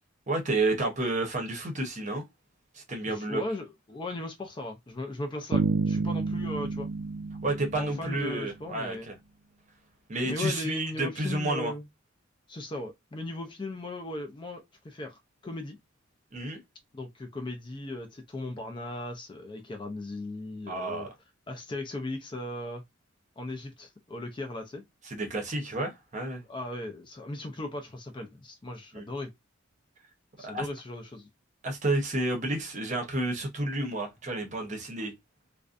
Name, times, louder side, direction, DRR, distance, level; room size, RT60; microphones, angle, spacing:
voice 1, 0.3-2.2 2.7-3.4 7.4-9.1 10.1-11.7 16.3-16.6 20.7-21.1 25.1-26.4 28.9-29.1 30.4-30.7 31.6-35.1, right 2 dB, 35° right, 0.8 m, -30 dB
voice 2, 3.1-6.9 7.7-9.1 10.2-11.9 12.5-15.8 16.9-21.1 21.5-22.8 23.4-24.8 26.5-29.3 30.4-31.3, left 2 dB, 25° left, 0.4 m, -37 dB
sound 1, 5.5-8.5, right 4 dB, 60° right, 0.3 m, -30 dB
2.5 x 2.1 x 2.4 m
head